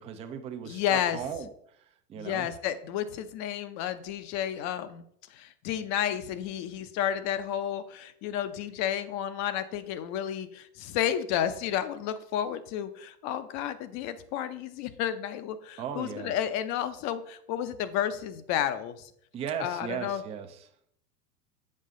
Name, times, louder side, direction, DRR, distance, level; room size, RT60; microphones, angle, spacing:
voice 1, 0.0-1.5 2.1-2.5 15.8-16.4 19.3-20.6, right 8 dB, 15° right, 6 dB, 0.4 m, -36 dB
voice 2, 0.6-1.2 2.2-5.0 5.3-19.1 19.6-20.2, left 10 dB, 40° left, 12 dB, 0.6 m, -31 dB
7.6 x 4.7 x 3.7 m, 0.68 s
hypercardioid pair, 110°, 46 cm